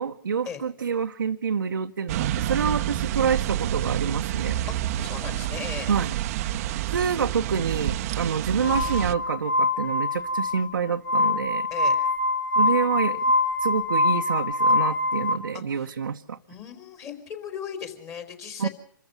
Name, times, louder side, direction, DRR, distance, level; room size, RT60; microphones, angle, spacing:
voice 1, 0.0-4.6 5.9-6.1 6.9-11.7 12.6-13.2 13.6-16.4 18.6-18.7, right 6 dB, 80° right, 4 dB, 0.9 m, -27 dB
sound 1, 2.1-9.1, right 13 dB, 45° right, 0.8 m, -28 dB
voice 2, 4.7-5.9 11.7-12.0 15.5-16.0 16.5-18.7, left 7 dB, 25° left, 7 dB, 4.0 m, -37 dB
Glass, 8.6-15.3, left 2 dB, 75° left, 2.3 m, -24 dB
26.5 x 14.0 x 7.1 m, 0.63 s
hypercardioid pair, 125°, 11 cm